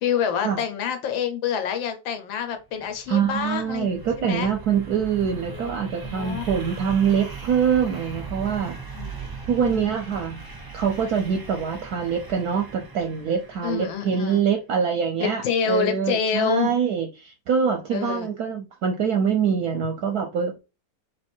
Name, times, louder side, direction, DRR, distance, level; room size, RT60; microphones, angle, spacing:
voice 1, 0.0-3.9 4.2-4.5 5.5-5.7 6.0-6.5 8.9-9.2 9.5-9.8 13.6-14.4 15.2-16.8 17.9-18.3, left 7 dB, 80° left, 1.5 m, -27 dB
sound 1, 2.7-14.4, right 5 dB, 35° right, 0.3 m, -39 dB
voice 2, 3.1-8.8 9.5-10.4 10.7-20.6, right 7 dB, 65° right, 1.0 m, -24 dB
3.5 x 3.2 x 4.3 m
omnidirectional pair, 2.1 m